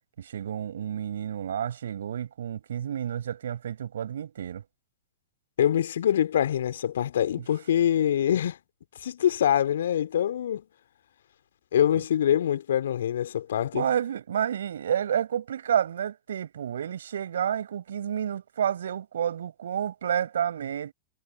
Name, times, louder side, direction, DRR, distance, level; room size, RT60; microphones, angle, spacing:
voice 1, 0.2-4.6 11.9-12.0 13.7-20.9, right 9 dB, 70° right, 5.1 m, -30 dB
voice 2, 5.6-8.6 9.0-10.6 11.7-13.9, left 10 dB, 70° left, 2.9 m, -24 dB
figure-of-eight pair, 95°, 0 cm